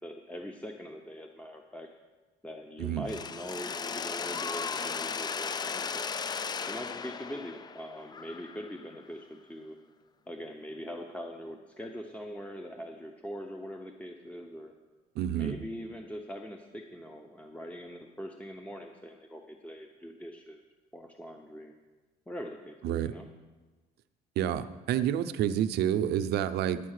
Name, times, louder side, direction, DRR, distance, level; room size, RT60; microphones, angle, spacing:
voice 1, 0.0-1.9 2.4-6.1 6.7-9.8 10.3-14.7 15.3-20.6 20.9-21.7 22.3-23.3, equal, 10° left, 3 dB, 0.8 m, -42 dB
Mechanisms, 3.1-8.9, left 6 dB, 25° left, 0.4 m, -36 dB
voice 2, 15.2-15.6 22.8-23.1 24.4-26.8, right 10 dB, 75° right, 10 dB, 0.6 m, -29 dB
10.0 x 8.6 x 6.5 m, 1.3 s
cardioid pair, 110°, 17 cm